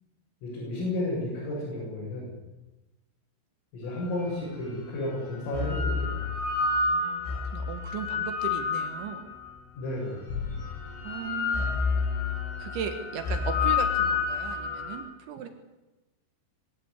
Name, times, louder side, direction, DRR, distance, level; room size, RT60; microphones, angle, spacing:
voice 1, 0.4-2.4 3.7-6.3 9.8-10.3, left 1 dB, 85° left, -6 dB, 10.0 m, -32 dB
sound 1, 4.2-4.3 5.3-9.5 10.3-15.0, left 5 dB, 60° left, 8.8 m, -29 dB
voice 2, 6.6-9.3 11.0-11.7 12.6-15.5, right 7 dB, 70° right, 7 dB, 3.8 m, -37 dB
23.5 x 16.0 x 9.7 m, 1.1 s
omnidirectional pair, 5.7 m